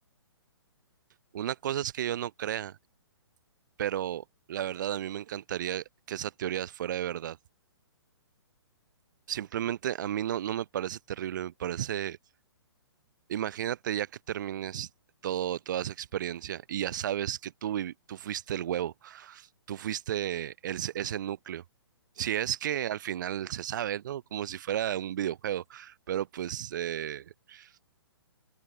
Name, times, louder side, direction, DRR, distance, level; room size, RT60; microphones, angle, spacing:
voice 1, 1.3-2.8 3.8-7.4 9.3-12.2 13.3-14.9 15.2-21.6 22.2-27.7, right 11 dB, 45° right, 0.5 m, -33 dB
open air
figure-of-eight pair, 125°, 14 cm